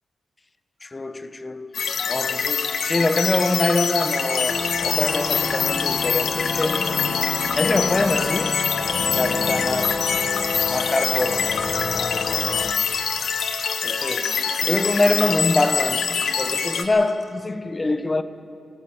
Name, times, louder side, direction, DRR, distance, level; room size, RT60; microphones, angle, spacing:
voice 1, 0.8-1.8 2.1-6.9 7.5-8.7 9.1-10.1 10.7-11.6 13.8-18.2, left 2 dB, 25° left, 1.0 m, -24 dB
sound 1, 1.7-16.8, left 6 dB, 85° left, 1.4 m, -25 dB
sound 2, 4.5-12.7, left 4 dB, 55° left, 1.1 m, -29 dB
19.5 x 16.0 x 9.0 m
wide cardioid pair, 120°, 0 cm